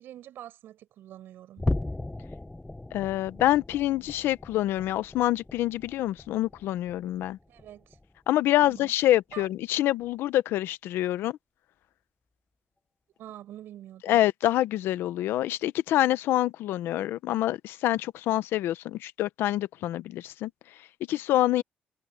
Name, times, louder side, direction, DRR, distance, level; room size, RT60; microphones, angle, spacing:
voice 1, 0.0-1.6 7.5-8.0 8.6-8.9 9.3-9.5 13.2-14.3, right 12 dB, 75° right, 6.9 m, -46 dB
sound 1, 1.6-8.2 8.6-8.9 9.3-9.4 10.0-10.1, left 2 dB, 10° left, 0.9 m, -37 dB
voice 2, 2.9-7.4 8.3-11.4 14.0-20.5 21.1-21.6, left 14 dB, 85° left, 0.8 m, -26 dB
cardioid pair, 130°, 4 cm